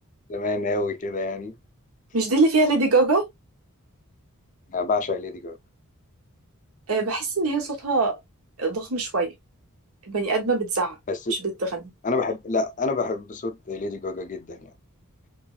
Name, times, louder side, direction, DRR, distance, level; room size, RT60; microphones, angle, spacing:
voice 1, 0.3-1.5 4.7-5.6 11.1-11.2 12.0-14.7, left 3 dB, 35° left, 0.5 m, -27 dB
voice 2, 2.1-3.2 6.9-8.2 8.6-9.3 10.1-11.0 11.4-11.9, right 3 dB, 70° right, 1.2 m, -23 dB
3.3 x 3.2 x 2.4 m
head